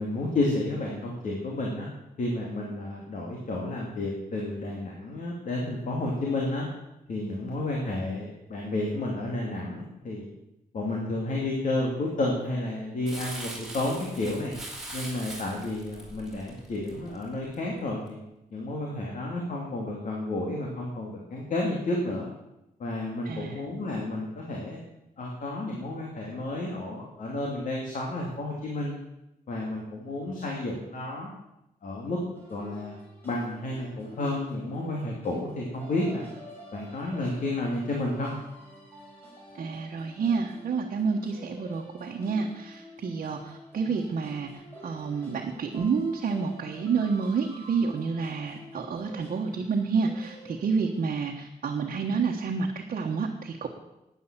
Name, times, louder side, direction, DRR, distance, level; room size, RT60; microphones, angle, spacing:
voice 1, 0.0-1.9 2.2-6.6 7.1-10.2 10.7-14.5 14.9-18.2 18.5-22.3 22.8-24.8 25.2-28.9 29.5-31.3 31.8-32.2 32.5-33.0 33.2-36.2 36.7-38.3, left 2 dB, 55° left, -1 dB, 2.5 m, -31 dB
Crumpling crinkling, 13.1-17.6 18.1-18.2, right 1 dB, 5° right, 3.0 m, -41 dB
voice 2, 23.2-23.6 39.6-44.5 44.8-53.7, right 5 dB, 60° right, 0 dB, 1.3 m, -29 dB
sound 1, 32.3-51.1, equal, 15° left, 4.8 m, -48 dB
11.0 x 9.5 x 7.3 m, 0.91 s
wide cardioid pair, 170°, 16 cm